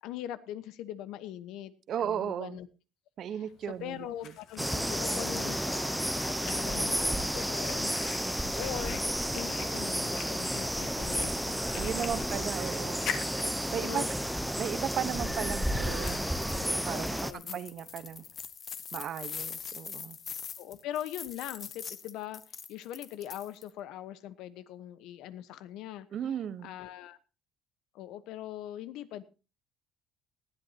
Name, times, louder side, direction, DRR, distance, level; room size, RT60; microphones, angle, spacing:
voice 1, 0.0-1.7 2.0-2.7 3.3-6.0 6.3-7.9 8.6-9.0 9.3-12.5 13.8-14.1 16.8-17.6 20.6-26.1 26.6-27.2 27.9-29.2, left 11 dB, 80° left, 14 dB, 1.1 m, -41 dB
voice 2, 1.9-2.6 3.2-4.1 11.7-13.1 13.7-14.0 14.6-18.2 18.9-20.2 26.1-26.7, right 9 dB, 50° right, 14 dB, 1.0 m, -36 dB
Fire, 3.5-18.5, left 8 dB, 60° left, 1.8 m, -46 dB
sound 1, 4.6-17.3, equal, ahead, 0.7 m, -32 dB
sound 2, 16.2-16.6 17.0-23.7, left 7 dB, 35° left, 1.0 m, -43 dB
19.0 x 12.5 x 2.9 m, 0.32 s
cardioid pair, 135°, 0 cm